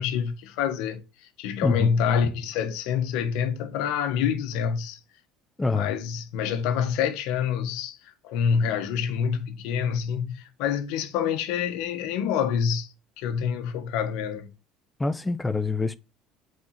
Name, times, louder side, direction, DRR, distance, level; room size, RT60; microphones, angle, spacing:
voice 1, 0.0-5.0 5.7-14.5, left 7 dB, 75° left, 1.6 m, -27 dB
voice 2, 1.6-2.0 5.6-6.0 15.0-16.0, left 3 dB, 15° left, 1.0 m, -26 dB
8.3 x 4.8 x 5.9 m
supercardioid pair, 85°, 0 cm